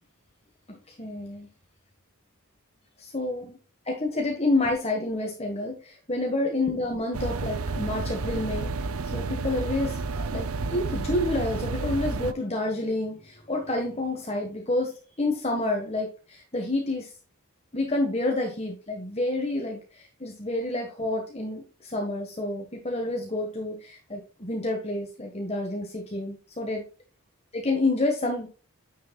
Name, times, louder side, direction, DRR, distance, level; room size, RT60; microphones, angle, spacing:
voice 1, 0.7-1.5 3.0-3.6 3.9-8.7 9.1-14.9 15.2-17.1 17.7-26.8 27.5-28.5, left 2 dB, 30° left, 1 dB, 1.6 m, -29 dB
sound 1, 7.1-12.3, right 3 dB, 75° right, 0.7 m, -31 dB
9.6 x 6.6 x 2.4 m, 0.35 s
head